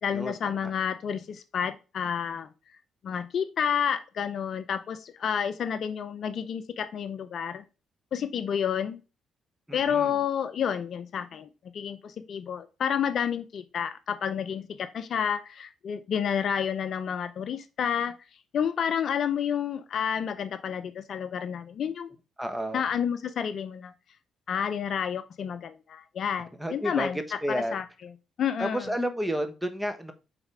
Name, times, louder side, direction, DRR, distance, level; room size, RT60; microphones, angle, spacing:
voice 1, 0.0-2.5 3.0-7.6 8.1-9.0 9.7-18.2 18.5-22.1 22.7-23.9 24.5-27.2 27.5-27.8 28.4-28.9, left 8 dB, 60° left, 12 dB, 0.5 m, -30 dB
voice 2, 9.7-10.1 22.4-22.8 26.6-27.1 27.4-27.8 28.6-30.1, equal, 5° right, 8 dB, 1.3 m, -31 dB
5.0 x 4.1 x 4.9 m, 0.30 s
supercardioid pair, 55°, 0 cm